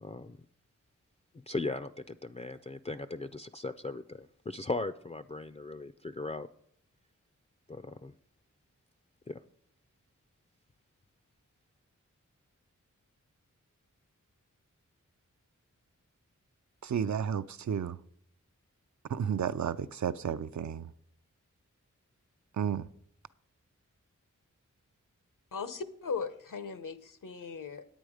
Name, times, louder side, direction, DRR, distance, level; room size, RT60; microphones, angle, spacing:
voice 1, 0.0-0.4 1.5-6.5 7.7-8.1 9.3-9.4, left 3 dB, 20° left, 0.4 m, -38 dB
voice 2, 16.8-18.0 19.1-20.9 22.6-22.9, right 8 dB, 65° right, 0.5 m, -32 dB
voice 3, 25.5-27.9, left 5 dB, 80° left, 0.9 m, -38 dB
9.2 x 8.9 x 4.9 m
wide cardioid pair, 50°, 31 cm